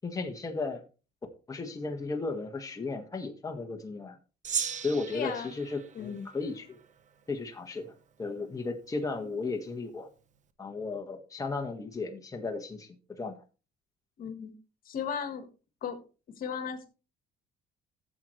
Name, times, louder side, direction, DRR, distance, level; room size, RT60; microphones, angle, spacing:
voice 1, 0.0-0.8 1.5-4.2 4.8-6.8 7.3-7.9 8.2-10.1 10.6-13.4, left 3 dB, 20° left, 3 dB, 1.6 m, -35 dB
Gong, 4.4-7.1, right 7 dB, 45° right, 1.0 m, -37 dB
voice 2, 5.1-5.5 5.9-6.3 14.2-14.5 14.8-15.5 15.8-16.0 16.4-16.9, left 7 dB, 60° left, 8 dB, 1.8 m, -35 dB
13.0 x 7.9 x 3.3 m, 0.33 s
cardioid pair, 110°, 17 cm